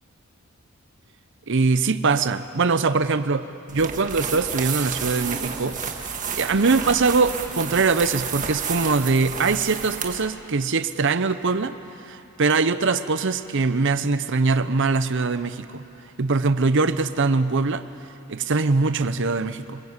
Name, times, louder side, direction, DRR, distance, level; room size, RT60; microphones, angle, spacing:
voice 1, 1.5-5.8 6.3-11.7 12.1-15.8 16.2-17.8 18.3-19.8, right 4 dB, 55° right, 12 dB, 0.8 m, -22 dB
sound 1, 3.7-10.3, right 6 dB, 35° right, 1.7 m, -31 dB
26.5 x 21.5 x 8.1 m, 2.9 s
head